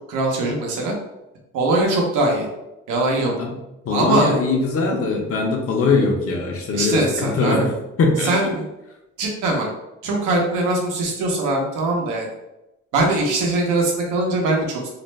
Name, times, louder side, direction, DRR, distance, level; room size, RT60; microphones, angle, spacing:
voice 1, 0.1-0.9 1.5-2.5 2.9-3.3 3.9-4.3 6.7-7.6 8.2-8.7 9.2-9.7 10.0-12.3 12.9-14.9, right 2 dB, 90° right, 0 dB, 0.8 m, -21 dB
voice 2, 3.8-7.7 8.0-8.5, left 3 dB, 50° left, 0 dB, 0.6 m, -21 dB
2.5 x 2.1 x 3.1 m, 0.93 s
cardioid pair, 90°, 30 cm